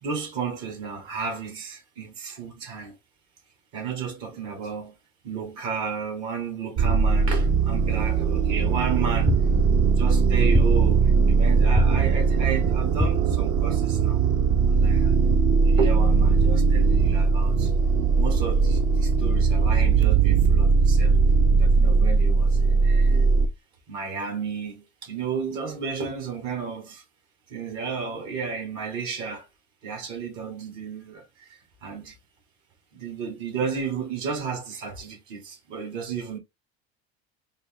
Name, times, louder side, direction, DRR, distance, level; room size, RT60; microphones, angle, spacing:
voice 1, 0.0-3.0 3.7-4.9 5.2-9.4 9.9-14.2 14.6-15.2 15.6-17.7 18.2-21.2 21.6-23.2 23.9-27.0 27.5-29.5 29.8-32.2 32.9-36.4, right 5 dB, 65° right, 1.9 m, -33 dB
sound 1, 6.8-23.5, right 4 dB, 50° right, 0.7 m, -20 dB
sound 2, 9.3-9.9 10.5-11.2 11.8-12.4 13.0-13.6, left 2 dB, ahead, 0.4 m, -27 dB
4.0 x 2.2 x 3.6 m
supercardioid pair, 90°, 30 cm